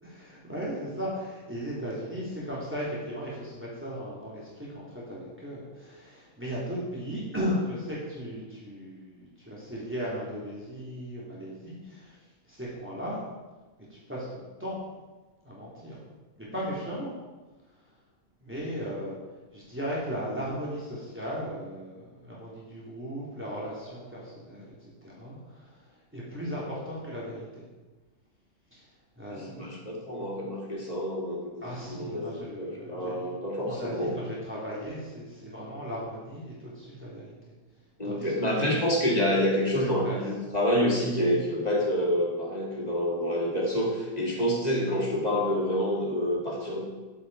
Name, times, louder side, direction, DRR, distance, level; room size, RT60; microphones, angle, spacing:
voice 1, 0.0-12.2 12.4-13.2 13.9-14.8 15.4-16.0 16.4-17.2 18.4-19.2 19.5-27.6 28.7-28.9 29.2-29.8 31.6-33.3 33.7-37.3 38.0-38.7 39.7-40.2, equal, 10° right, -7 dB, 3.2 m, -36 dB
voice 2, 29.3-34.1 38.0-46.8, equal, 25° left, -2 dB, 2.7 m, -28 dB
11.0 x 8.8 x 4.8 m, 1.2 s
omnidirectional pair, 1.5 m